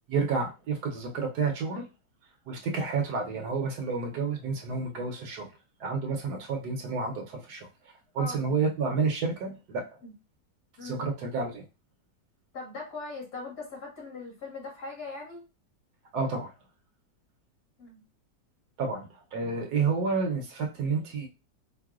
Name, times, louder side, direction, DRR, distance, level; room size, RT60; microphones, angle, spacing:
voice 1, 0.1-1.9 2.5-5.5 5.8-9.8 10.8-11.6 16.1-16.5 18.8-21.3, right 4 dB, 70° right, 2 dB, 1.2 m, -30 dB
voice 2, 12.5-15.5 17.8-18.0, left 3 dB, 55° left, -3 dB, 2.1 m, -40 dB
4.7 x 2.1 x 2.3 m, 0.27 s
omnidirectional pair, 1.9 m